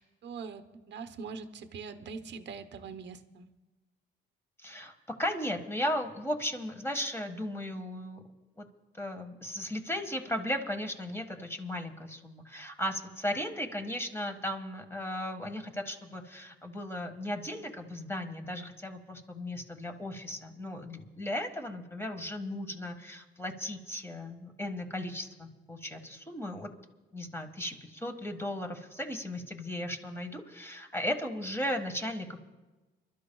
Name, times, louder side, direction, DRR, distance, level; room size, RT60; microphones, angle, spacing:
voice 1, 0.0-3.5, right 5 dB, 65° right, 10 dB, 0.9 m, -43 dB
voice 2, 4.6-8.2 8.6-8.7 9.0-26.7 27.1-32.4, left 1 dB, 10° left, 5 dB, 1.6 m, -36 dB
30.0 x 12.5 x 2.3 m, 1.2 s
cardioid pair, 90°, 20 cm